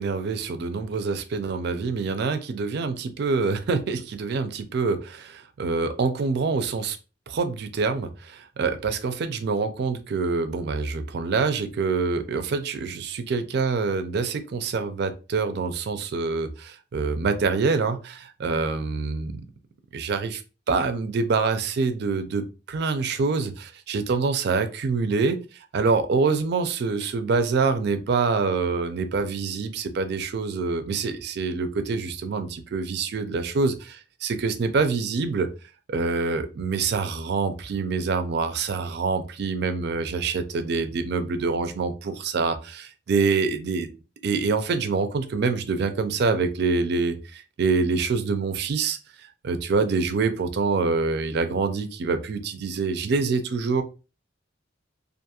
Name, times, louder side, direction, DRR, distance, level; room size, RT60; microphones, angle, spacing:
voice 1, 0.0-7.0 7.3-19.4 19.9-20.4 20.7-25.4 25.7-35.5 35.9-43.9 44.2-49.0 49.4-53.8, right 4 dB, 60° right, 9 dB, 0.4 m, -26 dB
2.5 x 2.3 x 2.8 m, 0.32 s
head